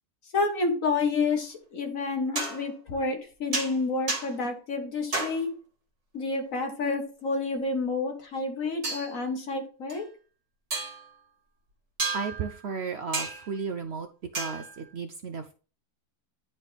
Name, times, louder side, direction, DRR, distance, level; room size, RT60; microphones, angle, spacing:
voice 1, 0.3-5.5 6.1-10.0, left 3 dB, 55° left, 3 dB, 1.8 m, -29 dB
sound 1, 2.0-2.1 2.4-2.7 3.5-3.8 4.1-4.3 5.1-5.4 8.8-9.1 9.9-10.0 10.7-11.1 12.0-12.6 13.1-13.6 14.3-14.9, right 3 dB, 45° right, 2.1 m, -32 dB
voice 2, 12.1-14.1 14.3-15.5, right 5 dB, 65° right, 7 dB, 0.6 m, -34 dB
10.0 x 4.1 x 3.4 m, 0.37 s
omnidirectional pair, 1.7 m